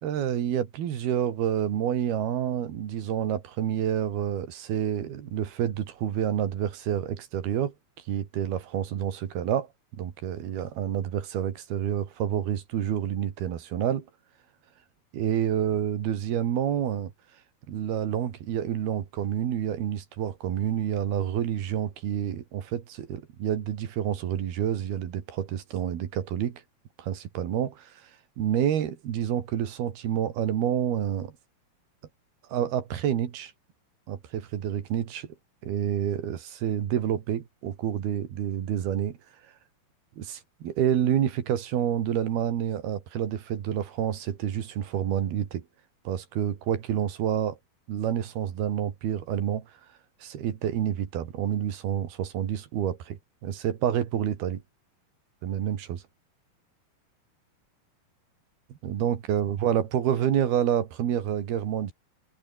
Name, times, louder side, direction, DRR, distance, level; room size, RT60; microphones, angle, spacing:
voice 1, 0.0-7.7 8.1-9.7 10.0-14.1 15.1-17.1 17.7-26.6 27.0-28.1 28.4-31.3 32.5-33.5 34.1-35.3 35.6-39.2 40.2-45.6 46.1-47.6 47.9-49.7 50.2-54.6 55.4-56.0 58.8-61.9, right 10 dB, 80° right, 4.2 m, -28 dB
omnidirectional pair, 4.4 m